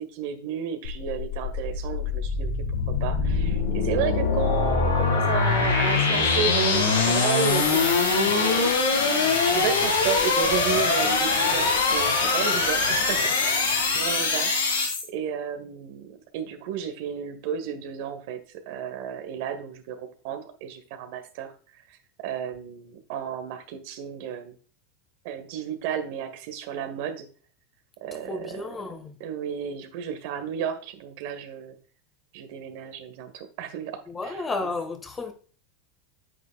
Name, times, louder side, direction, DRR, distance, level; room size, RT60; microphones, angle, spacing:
voice 1, 0.0-2.5 3.0-9.1 9.5-14.7 15.1-18.4 18.6-21.5 21.9-24.5 25.2-27.3 28.0-28.6 29.2-31.7 32.3-34.7, right 8 dB, 60° right, 1.5 m, -32 dB
sound 1, 0.8-15.0, left 4 dB, 85° left, 3.8 m, -23 dB
voice 2, 28.3-29.2 34.1-35.3, left 3 dB, 20° left, 1.5 m, -32 dB
9.3 x 9.0 x 2.3 m
hypercardioid pair, 90°, 0 cm